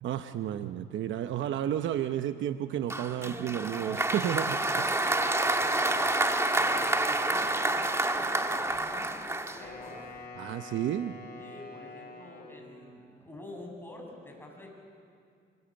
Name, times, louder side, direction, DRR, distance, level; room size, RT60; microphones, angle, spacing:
voice 1, 0.0-4.8 10.4-11.1, right 10 dB, 75° right, 9 dB, 0.9 m, -32 dB
Applause, 2.9-10.0, right 2 dB, 15° right, 1.6 m, -28 dB
voice 2, 4.6-6.1 6.5-10.0 11.3-14.7, left 1 dB, 10° left, 0 dB, 7.8 m, -47 dB
Wind instrument woodwind instrument, 9.6-13.0, left 3 dB, 50° left, 6.4 m, -46 dB
24.5 x 23.5 x 9.0 m, 2.3 s
cardioid pair, 90°, 20 cm